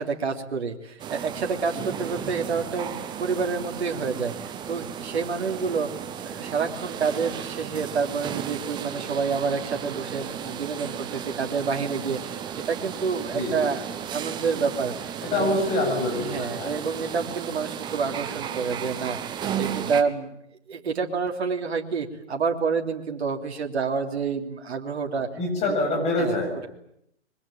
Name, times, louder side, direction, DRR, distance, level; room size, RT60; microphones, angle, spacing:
voice 1, 0.0-5.9 6.2-15.6 16.2-20.3 20.7-25.3 25.7-25.8 26.2-26.4, right 5 dB, 65° right, 3 dB, 3.2 m, -28 dB
sound 1, 1.0-20.0, right 8 dB, 15° right, 1.2 m, -34 dB
voice 2, 15.2-16.8 25.4-26.5, left 2 dB, 20° left, 2 dB, 7.7 m, -25 dB
26.5 x 23.0 x 8.9 m, 0.75 s
hypercardioid pair, 140°, 35 cm